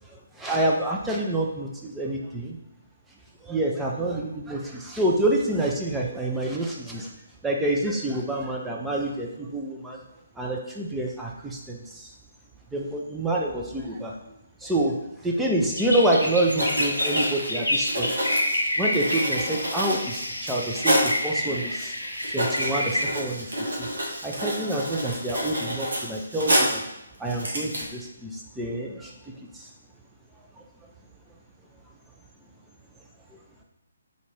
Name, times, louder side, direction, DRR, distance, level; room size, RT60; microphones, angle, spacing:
voice 1, 0.1-2.6 3.4-7.1 7.4-10.0 10.4-12.1 12.7-14.1 14.6-18.1 18.8-21.9 22.3-23.9 24.2-26.8 27.2-29.7 33.3-33.4, right 1 dB, 5° right, -2 dB, 0.4 m, -27 dB
sound 1, 15.7-23.0, left 1 dB, 85° left, 0.6 m, -28 dB
Writing, 16.2-16.3 16.5-21.2 21.8-21.9 22.1-26.9 27.3-27.8, equal, 65° right, 1.0 m, -28 dB
3.8 x 2.5 x 3.2 m, 0.86 s
figure-of-eight pair, 140°, 0 cm